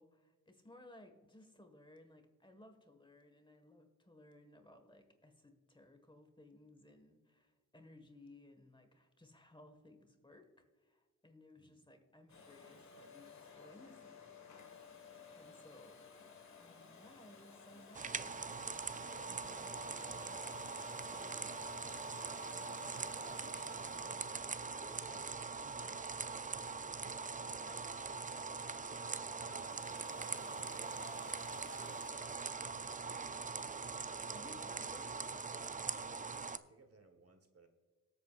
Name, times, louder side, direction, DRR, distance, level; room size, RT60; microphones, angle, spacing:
voice 1, 0.0-14.2 15.3-18.6 19.0-20.6 21.1-21.5 22.4-26.0 27.0-27.1 27.6-28.1 34.3-35.5, left 1 dB, 15° left, 6 dB, 1.6 m, -61 dB
Domestic sounds home sounds, 12.3-27.0 29.4-32.1, left 6 dB, 60° left, 1.6 m, -57 dB
tadpoles noisyfiltered, 17.9-36.6, right 4 dB, 25° right, 0.4 m, -42 dB
voice 2, 28.9-34.8 36.2-37.7, right 3 dB, 45° right, 7 dB, 1.3 m, -65 dB
18.5 x 8.4 x 2.5 m, 1.4 s
cardioid pair, 70°, 33 cm